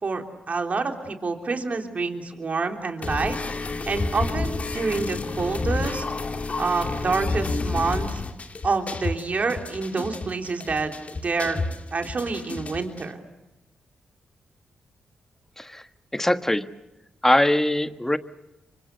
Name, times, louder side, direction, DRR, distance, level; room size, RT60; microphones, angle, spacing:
voice 1, 0.0-3.4 3.9-6.0 6.6-8.2 8.6-11.6 11.9-13.2, right 4 dB, 50° right, 4 dB, 3.5 m, -27 dB
sound 1, 3.0-13.0, left 3 dB, 45° left, 2.5 m, -30 dB
voice 2, 16.1-16.7 17.2-18.2, left 1 dB, 10° left, 10 dB, 1.4 m, -21 dB
28.0 x 25.0 x 6.8 m, 1.0 s
supercardioid pair, 50°, 3 cm